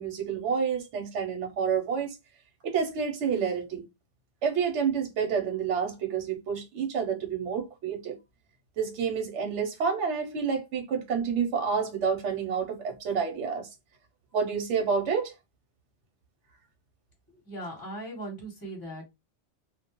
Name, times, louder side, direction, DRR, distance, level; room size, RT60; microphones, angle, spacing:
voice 1, 0.0-2.2 2.6-3.9 4.4-8.2 8.8-13.7 14.3-15.3, right 6 dB, 85° right, 1.0 m, -29 dB
voice 2, 17.3-19.0, right 1 dB, 20° left, 0.8 m, -39 dB
2.3 x 2.0 x 2.8 m
omnidirectional pair, 1.2 m